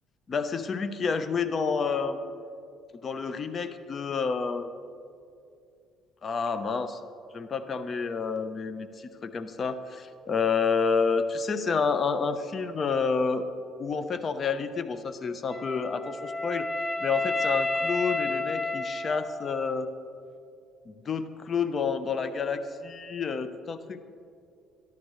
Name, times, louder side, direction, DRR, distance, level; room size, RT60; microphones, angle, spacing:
voice 1, 0.3-2.3 3.0-4.7 6.2-7.0 7.3-13.5 13.8-16.7 17.0-19.9 20.9-24.0, left 5 dB, 40° left, 10 dB, 1.0 m, -29 dB
Wind instrument woodwind instrument, 15.5-19.7, left 2 dB, 10° left, 1.4 m, -31 dB
22.5 x 13.5 x 3.3 m, 2.5 s
supercardioid pair, 80°, 0 cm